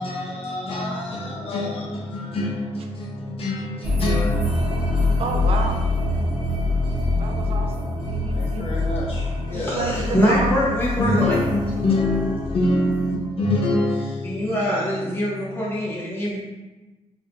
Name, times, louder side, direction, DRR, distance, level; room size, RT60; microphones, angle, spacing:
voice 1, 0.0-5.2 8.3-10.0 11.0-14.7 15.1-15.4, left 2 dB, 55° left, -4 dB, 0.6 m, -26 dB
sound 1, 3.8-13.1, left 2 dB, 10° right, 1.5 m, -25 dB
voice 2, 5.2-5.9 7.2-8.7 9.5-10.6, right 3 dB, 55° right, 3 dB, 0.5 m, -30 dB
voice 3, 9.5-11.4 14.2-16.4, equal, 20° left, -7 dB, 1.3 m, -23 dB
4.0 x 3.4 x 2.6 m, 1.2 s
wide cardioid pair, 155°, 12 cm